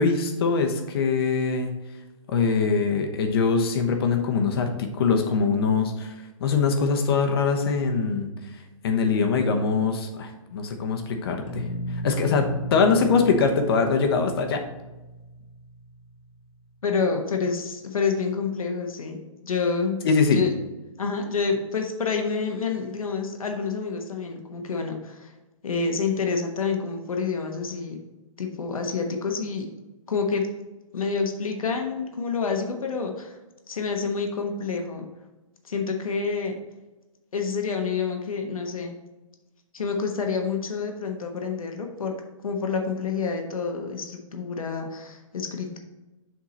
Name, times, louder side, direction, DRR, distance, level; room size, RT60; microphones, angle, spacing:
voice 1, 0.0-1.7 2.3-6.1 6.4-8.3 8.8-11.6 12.0-14.6 20.0-20.4, left 5 dB, 45° left, 5 dB, 1.0 m, -23 dB
sound 1, 11.5-16.4, equal, 65° left, 1.3 m, -35 dB
voice 2, 16.8-19.2 19.4-20.0 20.3-20.5 21.0-25.3 25.6-28.0 28.4-29.7 30.1-30.5 30.9-33.3 33.7-35.1 35.7-36.6 37.3-39.0 39.7-42.1 42.4-45.8, left 5 dB, 85° left, 3 dB, 1.3 m, -28 dB
7.4 x 3.7 x 4.1 m, 1.1 s
hypercardioid pair, 155°, 17 cm